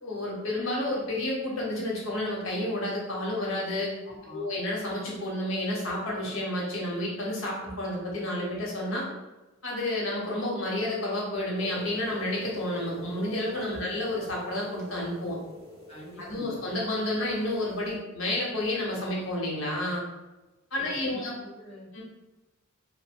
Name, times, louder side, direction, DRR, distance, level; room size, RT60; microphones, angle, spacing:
voice 1, 0.0-3.9 4.3-9.1 9.6-15.4 16.3-20.0 20.7-21.3 21.9-22.0, left 1 dB, 70° left, -3 dB, 1.0 m, -30 dB
voice 2, 4.0-4.5 13.6-13.9 15.9-16.6 20.7-21.9, equal, 30° left, -6 dB, 0.9 m, -46 dB
sound 1, 11.6-17.9, left 2 dB, 25° right, 1.5 m, -45 dB
3.0 x 2.1 x 3.5 m, 1.1 s
head